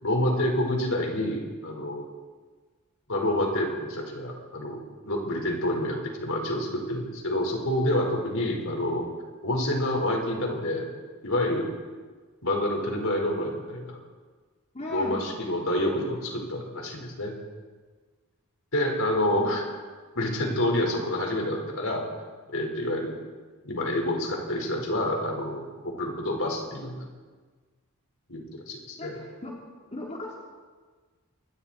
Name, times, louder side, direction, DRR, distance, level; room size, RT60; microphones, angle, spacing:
voice 1, 0.0-2.0 3.1-4.8 5.0-9.1 9.4-10.9 11.2-11.7 12.4-14.0 14.9-17.3 18.7-19.7 20.1-22.0 22.5-23.1 23.6-27.1 28.3-29.2, left 1 dB, 65° left, 1 dB, 5.1 m, -28 dB
voice 2, 14.7-15.3 19.3-19.5 29.0-29.5 29.9-30.4, left 2 dB, 30° left, -3 dB, 3.8 m, -37 dB
27.5 x 24.0 x 4.5 m, 1.4 s
head